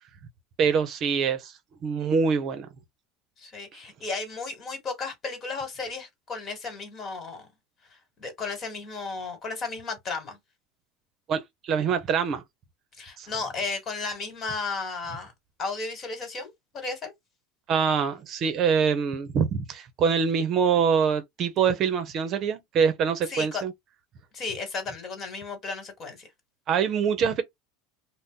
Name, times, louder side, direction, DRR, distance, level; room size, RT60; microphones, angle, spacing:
voice 1, 0.6-1.5 1.8-2.7 11.3-12.4 13.2-13.3 17.7-23.7 26.7-27.4, right 6 dB, 45° right, 0.7 m, -24 dB
voice 2, 3.4-7.5 8.2-10.4 13.0-15.3 15.6-17.1 23.3-23.6 24.3-26.3, left 4 dB, 40° left, 1.5 m, -34 dB
2.6 x 2.1 x 3.6 m
supercardioid pair, 100°, 0 cm